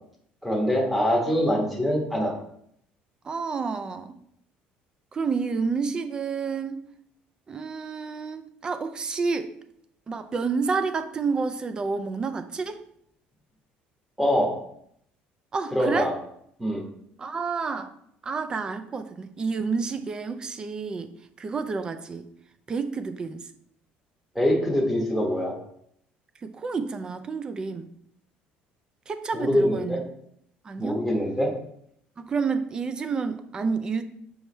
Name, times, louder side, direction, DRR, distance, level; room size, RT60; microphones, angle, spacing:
voice 1, 0.4-2.3 14.2-14.5 15.7-16.1 16.6-16.8 24.3-25.5 29.3-30.0 30.8-31.5, equal, 5° right, -1 dB, 1.2 m, -24 dB
voice 2, 1.3-1.7 3.2-4.1 5.1-6.9 7.5-9.5 10.1-12.8 15.5-16.1 17.2-17.9 18.2-21.1 21.4-22.3 22.7-23.5 26.4-27.9 29.1-30.0 30.6-31.0 32.2-34.0, right 4 dB, 25° right, 10 dB, 0.5 m, -29 dB
6.7 x 4.7 x 3.3 m, 0.70 s
cardioid pair, 155°, 4 cm